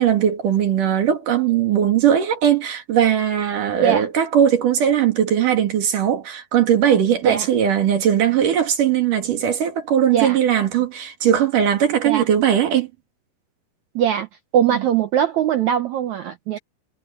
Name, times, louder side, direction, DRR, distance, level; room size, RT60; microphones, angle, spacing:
voice 1, 0.0-12.9 14.7-14.8, right 9 dB, 60° right, 3.5 m, -19 dB
voice 2, 13.9-14.3 14.5-16.6, right 9 dB, 75° right, 1.7 m, -20 dB
omnidirectional pair, 4.6 m